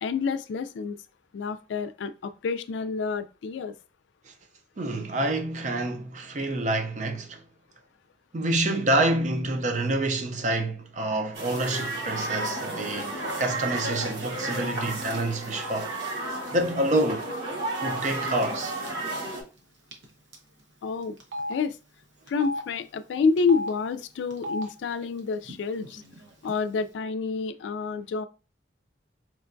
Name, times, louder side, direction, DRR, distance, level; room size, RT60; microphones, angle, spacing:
voice 1, 0.0-1.0 1.3-3.7 20.8-21.2 21.5-21.8 22.3-26.0 26.4-28.3, left 5 dB, 85° left, 0.3 m, -28 dB
voice 2, 4.8-7.4 8.3-17.3 17.8-18.8, right 2 dB, 40° right, 0.5 m, -28 dB
sound 1, 11.3-19.4, right 2 dB, 70° right, 1.1 m, -32 dB
Telephone, 18.4-18.6 18.9-19.0 19.9-20.0 20.3-20.4 21.2-21.5 22.3-22.6 23.4-23.7 24.3-24.6 25.4-25.6 25.8-26.5, left 1 dB, 85° right, 0.8 m, -34 dB
4.5 x 2.2 x 2.5 m
head